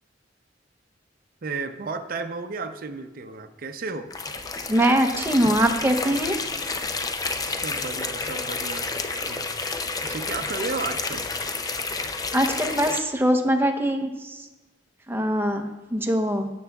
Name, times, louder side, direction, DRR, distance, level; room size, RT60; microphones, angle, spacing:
voice 1, 1.4-4.1 7.6-9.5 10.0-11.3, right 4 dB, 50° right, 7 dB, 0.6 m, -33 dB
sound 1, 4.1-13.0, left 3 dB, 20° left, 0.5 m, -30 dB
voice 2, 4.7-6.4 12.3-14.3 15.1-16.5, right 1 dB, 10° right, 4 dB, 0.8 m, -22 dB
16.0 x 7.0 x 2.3 m, 1.1 s
head